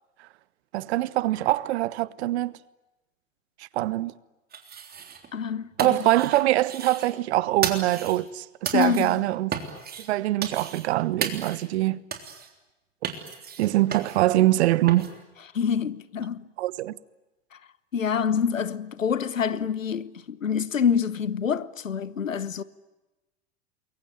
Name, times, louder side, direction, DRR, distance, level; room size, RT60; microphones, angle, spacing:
voice 1, 0.7-2.5 3.7-4.1 5.8-9.5 10.1-12.0 13.6-15.1 16.6-16.9, right 16 dB, 55° right, 1.1 m, -23 dB
sound 1, 4.5-5.3 5.6-7.2 7.6-8.3 8.7-9.2 9.5-10.1 10.4-10.9 11.2-11.7 12.1-12.5 13.0-14.3 14.9-15.1, right 7 dB, 25° right, 3.5 m, -34 dB
voice 2, 5.3-6.0 8.7-9.2 15.5-16.5 17.9-22.6, left 7 dB, 85° left, 1.1 m, -26 dB
27.5 x 22.5 x 9.2 m
figure-of-eight pair, 90°, 38 cm